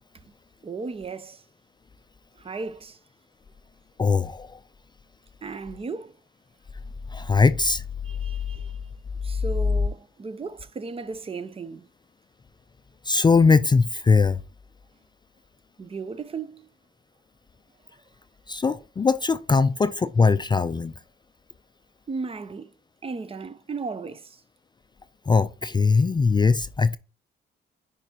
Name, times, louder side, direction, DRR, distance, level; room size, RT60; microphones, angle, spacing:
voice 1, 0.6-1.4 2.4-3.0 5.4-6.2 8.0-8.8 9.2-11.9 15.8-16.7 22.1-22.7 23.0-24.4, right 4 dB, 30° right, 0.5 m, -35 dB
voice 2, 4.0-4.5 7.1-7.8 13.1-14.4 18.5-20.9 25.3-27.0, left 4 dB, 20° left, 0.3 m, -20 dB
9.6 x 5.0 x 2.8 m
cardioid pair, 90°, 20 cm